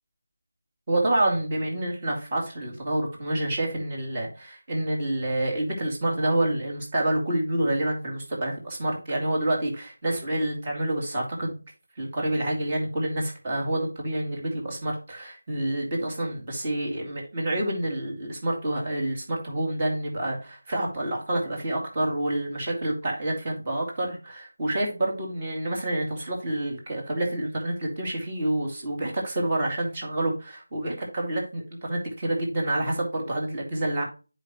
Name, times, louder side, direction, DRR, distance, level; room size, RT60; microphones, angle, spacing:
voice 1, 0.9-11.6 12.0-34.0, right 1 dB, 25° right, -1 dB, 2.5 m, -28 dB
9.5 x 5.1 x 3.0 m, 0.33 s
figure-of-eight pair, 165°, 0 cm